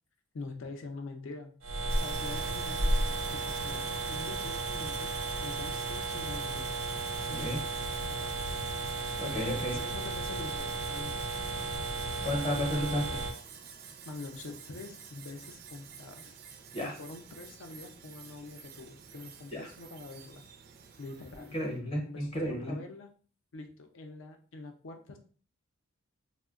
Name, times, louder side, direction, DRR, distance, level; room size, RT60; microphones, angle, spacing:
voice 1, 0.3-1.5 2.0-5.2 5.4-6.7 7.3-7.7 8.1-8.5 9.4-11.3 14.1-16.4 16.8-20.4 21.0-21.5 22.0-23.1 23.5-25.2, left 3 dB, 65° left, 5 dB, 0.5 m, -45 dB
sound 1, 1.6-13.3, right 2 dB, 85° right, 0.7 m, -34 dB
Sawing, 1.9-21.8, right 6 dB, 45° right, 0.4 m, -47 dB
voice 2, 9.2-9.8 12.2-13.2 16.7-16.9 19.5-19.7 21.5-22.7, equal, 25° left, 1 dB, 0.7 m, -32 dB
4.3 x 2.1 x 2.4 m, 0.42 s
head